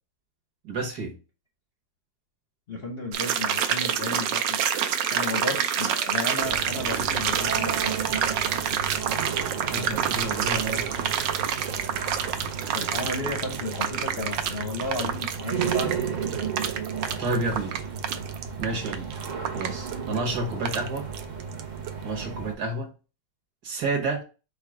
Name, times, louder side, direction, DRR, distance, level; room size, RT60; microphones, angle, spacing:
voice 1, 0.6-1.2 9.7-10.9 17.2-17.7 18.6-19.1 19.5-21.1 22.0-22.9 23.6-24.2, right 2 dB, 60° right, 1 dB, 1.6 m, -30 dB
voice 2, 2.7-4.6 5.1-8.0 12.7-16.0 19.6-19.9, left 2 dB, 50° left, 1 dB, 0.7 m, -33 dB
sound 1, 3.1-21.6 21.9-22.0, right 9 dB, 80° right, 1.2 m, -28 dB
sound 2, 6.4-22.5, right 6 dB, 45° right, 0.6 m, -34 dB
4.5 x 2.3 x 4.7 m, 0.33 s
omnidirectional pair, 2.0 m